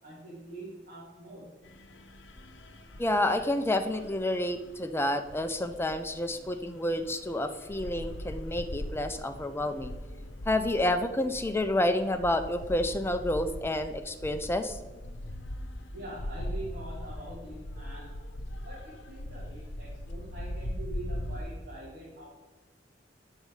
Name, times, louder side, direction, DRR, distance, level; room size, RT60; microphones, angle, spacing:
voice 1, 0.0-1.5 15.9-18.1 18.6-22.3, right 2 dB, 50° right, -8 dB, 2.6 m, -44 dB
sound 1, 1.6-21.4, left 1 dB, 75° left, 0.8 m, -41 dB
voice 2, 3.0-9.9 10.5-14.8, left 1 dB, 15° left, 8 dB, 0.5 m, -29 dB
8.4 x 6.4 x 4.8 m, 1.2 s
head